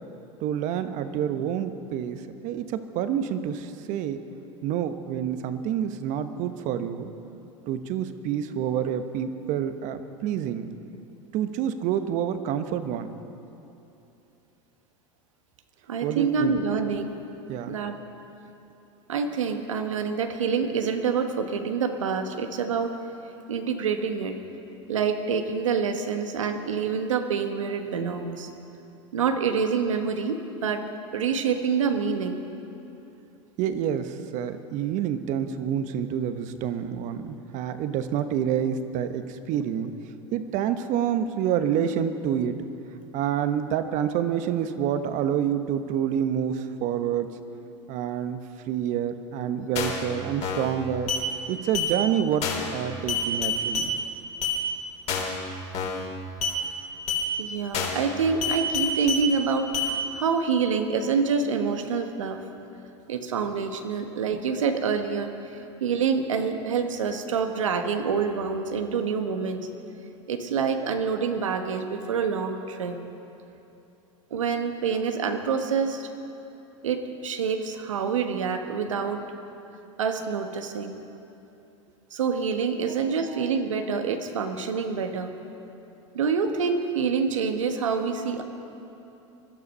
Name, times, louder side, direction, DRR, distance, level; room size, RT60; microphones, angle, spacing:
voice 1, 0.4-4.2 4.6-7.1 7.7-10.7 11.3-13.1 16.0-16.5 17.5-17.7 33.6-39.9 40.3-42.7 43.1-47.3 47.9-48.4 48.7-51.1 51.5-53.9 82.9-83.4, right 9 dB, 50° right, 9 dB, 1.1 m, -28 dB
voice 2, 15.9-17.2 17.7-18.0 19.1-23.0 23.5-24.4 24.9-28.5 29.1-30.9 31.1-32.4 57.4-62.4 63.1-69.7 70.3-73.0 74.3-76.1 76.8-79.2 80.0-80.9 82.1-85.4 86.1-88.4, right 5 dB, 90° right, 6 dB, 1.3 m, -27 dB
sound 1, 49.8-50.1 50.4-50.7 51.1-51.2 51.7-51.9 52.4-52.7 53.1-53.9 54.4-54.6 55.1-55.4 55.7-56.1 56.4-56.6 57.1-57.2 57.7-58.1 58.4-59.2 59.7-59.9, left 5 dB, 45° left, 3.3 m, -27 dB
21.0 x 12.5 x 5.5 m, 2.9 s
hypercardioid pair, 100°, 16 cm